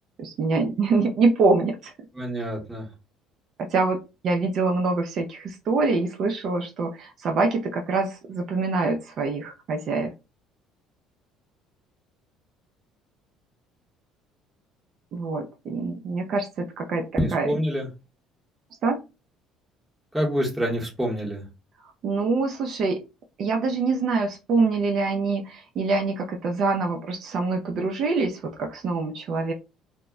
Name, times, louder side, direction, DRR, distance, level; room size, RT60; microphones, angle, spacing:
voice 1, 0.2-1.9 3.6-4.0 4.2-10.1 15.1-17.0 17.3-17.5 18.8-19.0 22.0-23.0 23.4-29.5, right 3 dB, 50° right, 3 dB, 0.4 m, -25 dB
voice 2, 2.2-2.8 17.2-17.9 20.1-21.4, equal, 5° right, -2 dB, 1.0 m, -26 dB
2.1 x 2.0 x 3.5 m, 0.27 s
cardioid pair, 130°, 0 cm